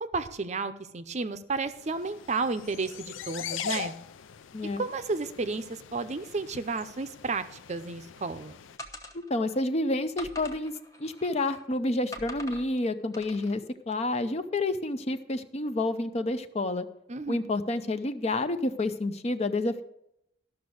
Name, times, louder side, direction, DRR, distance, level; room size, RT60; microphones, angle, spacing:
voice 1, 0.0-3.9 4.8-8.5 17.1-17.4, right 3 dB, 35° right, 10 dB, 0.6 m, -32 dB
sound 1, 1.6-8.8, left 8 dB, 85° left, 0.5 m, -41 dB
sound 2, 8.8-9.6 10.2-11.6 12.1-12.7 13.1-13.6, left 1 dB, 15° left, 1.0 m, -44 dB
voice 2, 9.1-10.7 11.0-16.9 17.3-19.8, left 2 dB, 35° left, 11 dB, 0.5 m, -29 dB
13.0 x 6.1 x 6.3 m, 0.80 s
head